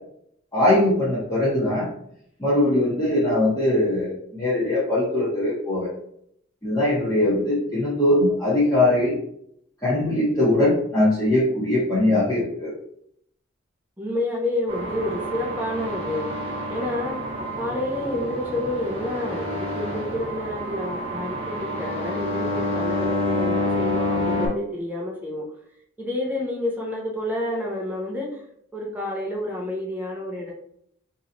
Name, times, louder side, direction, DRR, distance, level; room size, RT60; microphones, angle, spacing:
voice 1, 0.5-1.9 2.4-5.9 6.6-9.1 9.8-12.7, left 1 dB, 20° left, -11 dB, 0.9 m, -21 dB
voice 2, 14.0-16.2 16.7-17.2 17.6-25.4 26.0-28.4 28.7-30.5, left 1 dB, 10° right, -4 dB, 0.5 m, -29 dB
sound 1, 14.7-24.5, left 1 dB, 25° right, 0.9 m, -28 dB
3.1 x 2.8 x 2.6 m, 0.70 s
head